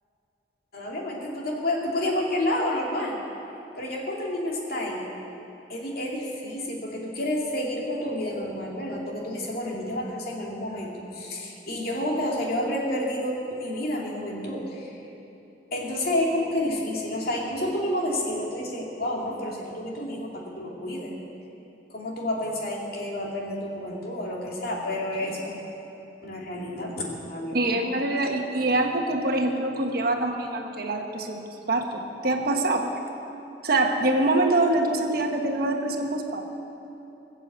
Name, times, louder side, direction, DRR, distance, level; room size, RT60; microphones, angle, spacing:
voice 1, 0.7-3.2 3.8-5.1 5.7-15.0 15.7-21.1 21.9-25.6 26.2-27.8, left 1 dB, 55° left, -2 dB, 2.5 m, -30 dB
voice 2, 27.5-31.4 31.7-32.9 33.6-36.5, right 2 dB, 55° right, 3 dB, 1.3 m, -25 dB
20.0 x 7.4 x 8.0 m, 3.0 s
head